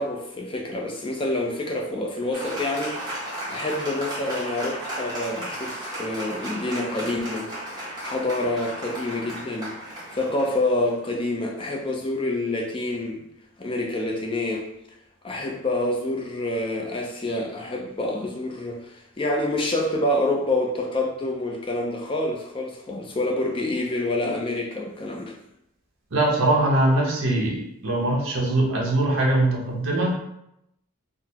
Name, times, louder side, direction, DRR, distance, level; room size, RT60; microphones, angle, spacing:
voice 1, 0.0-3.0 3.5-7.5 8.0-9.7 10.1-13.3 13.6-14.7 15.2-25.4, left 1 dB, 25° left, 0 dB, 0.4 m, -27 dB
Applause, 2.3-11.3, right 1 dB, 20° right, 1.0 m, -35 dB
voice 2, 26.1-30.1, right 1 dB, 60° right, -2 dB, 0.9 m, -22 dB
3.8 x 2.0 x 2.8 m, 0.79 s
head